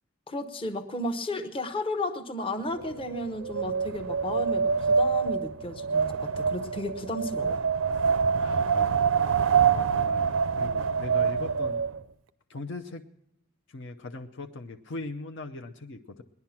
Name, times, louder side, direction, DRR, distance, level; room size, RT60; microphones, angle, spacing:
voice 1, 0.3-7.6, left 1 dB, 25° left, 8 dB, 0.8 m, -33 dB
Wind, 2.8-12.0, right 6 dB, 75° right, 0.5 m, -26 dB
voice 2, 7.9-9.2 9.7-11.9 12.5-13.1 13.7-16.2, left 3 dB, 60° left, 6 dB, 0.7 m, -40 dB
18.5 x 11.0 x 5.8 m, 0.81 s
head